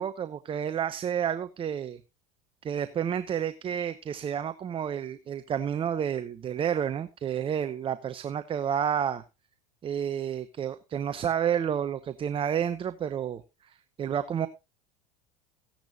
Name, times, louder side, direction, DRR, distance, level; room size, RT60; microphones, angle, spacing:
voice 1, 0.0-2.0 2.6-9.2 9.8-13.4 13.7-14.5, right 9 dB, 35° right, 0.8 m, -30 dB
15.5 x 10.5 x 2.7 m
hypercardioid pair, 85°, 17 cm